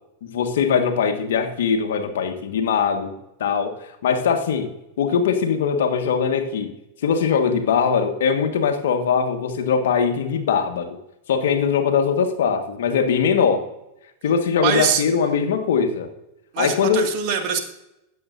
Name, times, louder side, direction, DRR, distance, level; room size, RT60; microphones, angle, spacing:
voice 1, 0.2-3.1 3.4-3.7 4.0-4.7 5.0-6.7 7.0-11.0 11.3-13.6 14.2-16.1 16.6-17.1, left 6 dB, 65° left, 6 dB, 1.5 m, -21 dB
voice 2, 14.6-15.0 16.5-17.6, right 7 dB, 45° right, 4 dB, 2.0 m, -23 dB
23.5 x 7.9 x 2.6 m, 0.88 s
figure-of-eight pair, 90°, 0 cm